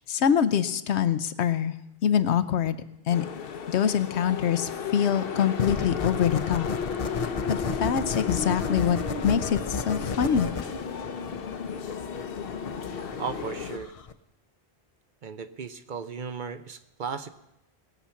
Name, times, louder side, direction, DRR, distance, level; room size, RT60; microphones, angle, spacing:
voice 1, 0.0-1.7 2.0-2.8 3.1-3.3 3.7-6.7 7.5-9.0 9.2-10.5, left 8 dB, 85° left, 12 dB, 1.0 m, -24 dB
sound 1, 3.1-13.8, left 5 dB, 60° left, 0.9 m, -34 dB
sound 2, 5.6-14.1, left 5 dB, 40° left, 0.6 m, -34 dB
voice 2, 13.2-13.9 15.2-17.3, right 5 dB, 55° right, 10 dB, 0.7 m, -35 dB
20.0 x 7.1 x 5.7 m, 0.88 s
omnidirectional pair, 1.1 m